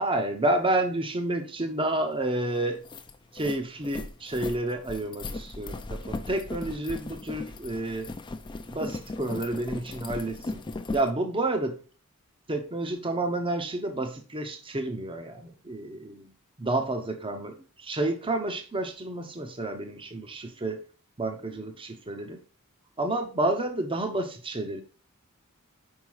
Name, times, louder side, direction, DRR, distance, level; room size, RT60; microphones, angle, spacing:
voice 1, 0.0-2.9 3.3-8.1 8.7-10.6 10.9-11.8 12.5-16.3 16.6-20.8 21.2-22.4 23.0-24.8, right 2 dB, 25° right, 0.8 m, -30 dB
sound 1, 2.3-2.4 2.7-11.1, left 2 dB, 20° left, 0.5 m, -37 dB
5.6 x 4.8 x 4.7 m
head